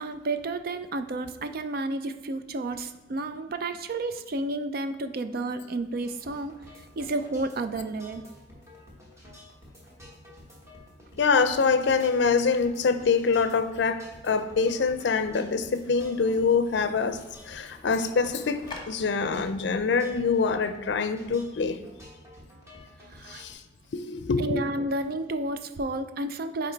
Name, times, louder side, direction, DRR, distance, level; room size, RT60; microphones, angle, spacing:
voice 1, 0.0-8.2 23.1-23.4 24.4-26.7, right 2 dB, 55° right, 9 dB, 0.5 m, -31 dB
sound 1, 6.0-23.5, left 1 dB, 15° right, 1.4 m, -50 dB
voice 2, 11.2-17.2 17.5-21.8 23.3-23.6 23.9-24.6, left 5 dB, 70° left, 10 dB, 0.5 m, -25 dB
sound 2, 14.1-18.8, left 3 dB, 25° left, 1.1 m, -50 dB
8.8 x 3.0 x 4.5 m, 1.2 s
head